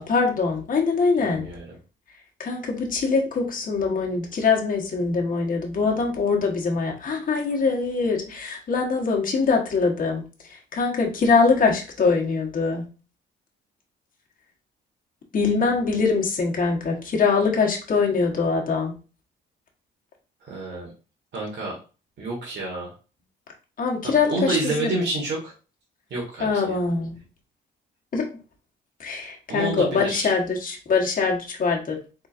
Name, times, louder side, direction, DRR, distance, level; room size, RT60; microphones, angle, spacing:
voice 1, 0.0-1.5 2.4-12.8 15.3-18.9 23.8-24.9 26.4-27.2 28.1-28.4 29.0-32.0, left 4 dB, 45° left, -1 dB, 1.2 m, -23 dB
voice 2, 1.2-1.7 20.4-20.9 21.3-21.8 22.2-22.9 24.0-25.5 26.1-26.8 29.5-30.3, right 2 dB, 65° right, -2 dB, 1.5 m, -29 dB
4.0 x 3.7 x 2.5 m, 0.34 s
cardioid pair, 90°, 20 cm